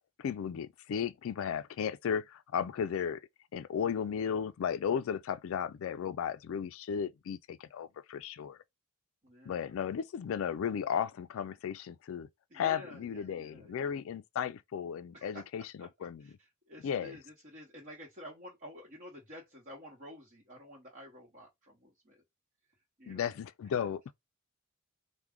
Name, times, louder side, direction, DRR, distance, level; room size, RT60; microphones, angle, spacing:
voice 1, 0.2-3.2 3.5-8.6 9.5-12.3 12.5-16.2 16.8-17.2 23.1-24.1, left 7 dB, 65° left, 0.3 m, -35 dB
voice 2, 9.2-9.7 12.5-14.0 15.1-15.5 15.8-15.9 16.2-22.2 23.0-23.4, left 1 dB, 40° right, 1.0 m, -50 dB
4.6 x 2.1 x 3.6 m
head